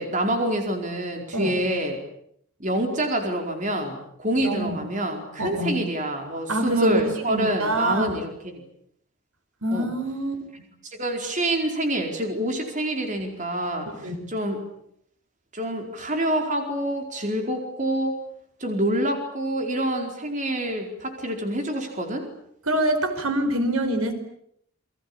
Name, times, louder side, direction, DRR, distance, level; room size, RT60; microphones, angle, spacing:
voice 1, 0.0-2.0 2.6-8.6 9.7-9.9 10.8-14.6 15.5-18.2 18.6-22.3, right 1 dB, 35° right, 4 dB, 4.6 m, -27 dB
voice 2, 4.4-4.8 5.4-5.8 6.5-8.1 9.6-10.4 14.0-14.2 22.7-24.1, right 1 dB, 75° right, 8 dB, 5.2 m, -25 dB
29.5 x 22.5 x 8.8 m, 0.70 s
head